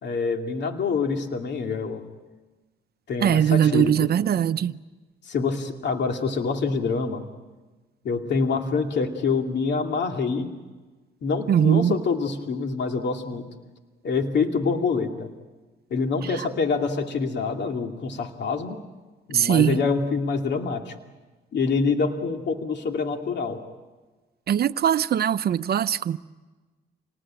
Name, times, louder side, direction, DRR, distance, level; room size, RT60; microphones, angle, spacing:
voice 1, 0.0-2.0 3.1-4.1 5.2-7.2 8.0-10.5 11.2-13.4 14.0-15.3 15.9-18.8 19.3-20.9 21.5-23.6, left 4 dB, 60° left, 2.5 m, -26 dB
voice 2, 3.2-4.7 11.5-12.0 19.3-19.8 24.5-26.2, right 9 dB, 50° right, 0.7 m, -21 dB
27.5 x 19.5 x 8.8 m
cardioid pair, 90°, 20 cm